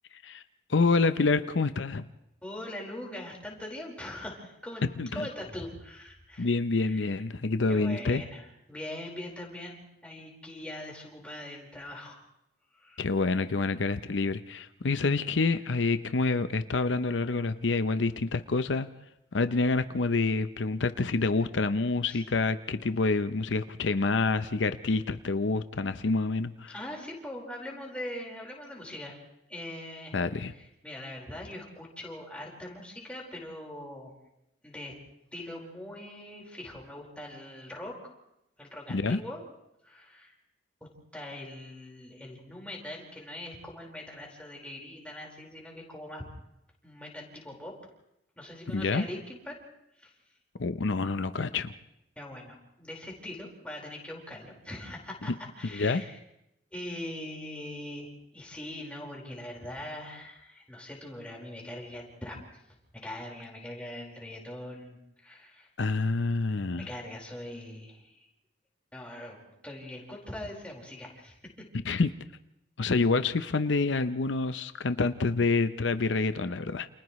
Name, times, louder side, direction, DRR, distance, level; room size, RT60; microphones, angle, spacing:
voice 1, 0.1-0.4 0.7-2.1 5.0-5.3 6.4-8.2 13.0-18.9 19.3-26.7 30.1-30.5 38.9-39.2 48.7-49.0 50.6-51.7 55.7-56.0 65.8-66.9 71.8-72.1 72.8-76.9, left 3 dB, 85° left, 11 dB, 0.7 m, -27 dB
voice 2, 2.4-4.8 5.1-6.5 6.8-7.2 7.7-12.2 12.7-13.0 22.1-22.2 26.7-29.2 29.5-34.1 34.6-34.9 35.3-38.0 38.6-39.4 39.8-40.3 41.1-46.2 46.8-47.7 48.4-49.6 50.0-50.1 52.2-56.2 56.7-62.7 63.0-65.7 66.8-68.3 68.9-71.6, left 1 dB, 5° left, -2 dB, 4.7 m, -42 dB
29.5 x 28.5 x 3.2 m, 0.83 s
head